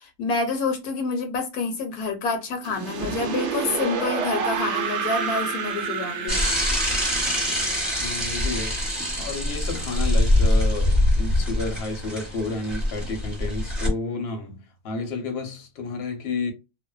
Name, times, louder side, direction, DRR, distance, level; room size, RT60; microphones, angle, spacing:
voice 1, 0.2-6.4, left 4 dB, 75° left, 1.1 m, -27 dB
sound 1, 2.6-9.6, right 6 dB, 65° right, 0.7 m, -30 dB
Bicycle / Mechanisms, 6.3-13.9, left 1 dB, ahead, 0.8 m, -24 dB
voice 2, 8.0-8.8 9.2-16.5, left 3 dB, 50° left, 0.8 m, -31 dB
2.6 x 2.1 x 2.2 m
omnidirectional pair, 1.7 m